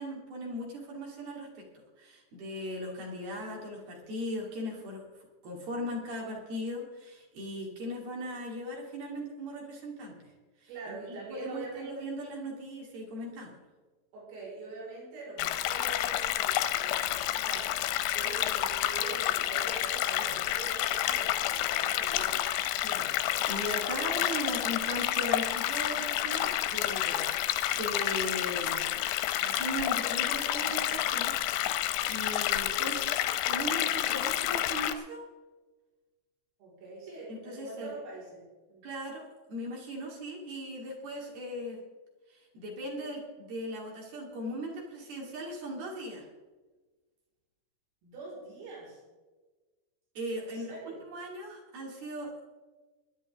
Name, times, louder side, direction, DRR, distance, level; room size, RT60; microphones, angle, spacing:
voice 1, 0.0-1.7 2.0-5.0 5.4-10.3 10.6-13.6 20.2-20.4 22.8-28.8 29.4-31.4 31.6-33.1 33.5-35.2 37.3-37.9 38.8-39.2 39.5-41.8 42.5-46.3 50.2-50.7 51.1-52.4, equal, 55° right, -1 dB, 3.9 m, -38 dB
voice 2, 10.7-11.9 14.1-22.4 36.6-38.9 48.0-49.0 50.3-51.0, right 3 dB, 85° right, -4 dB, 7.6 m, -44 dB
sound 1, 15.4-34.9, left 13 dB, 80° left, 2.8 m, -29 dB
22.0 x 10.5 x 3.6 m, 1.2 s
omnidirectional pair, 5.7 m